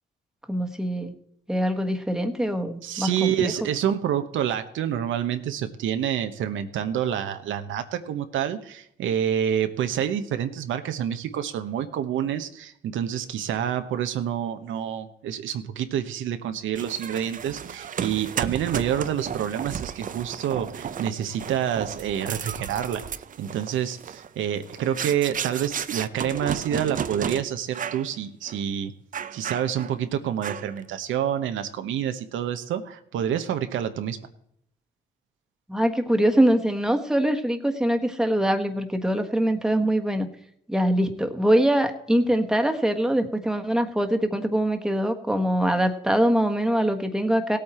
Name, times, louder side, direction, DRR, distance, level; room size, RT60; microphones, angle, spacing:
voice 1, 0.5-1.1 1.5-3.5 35.7-40.3 40.7-47.6, right 1 dB, 5° right, 5 dB, 1.4 m, -23 dB
voice 2, 2.8-23.0 23.4-28.9 29.3-34.2, right 9 dB, 80° right, 8 dB, 1.0 m, -28 dB
sound 1, 16.7-27.4 27.7-28.1 28.5-28.6 29.1-30.0 30.4-30.8, right 8 dB, 40° right, 0.6 m, -34 dB
17.0 x 8.6 x 4.3 m, 0.71 s
cardioid pair, 90°, 20 cm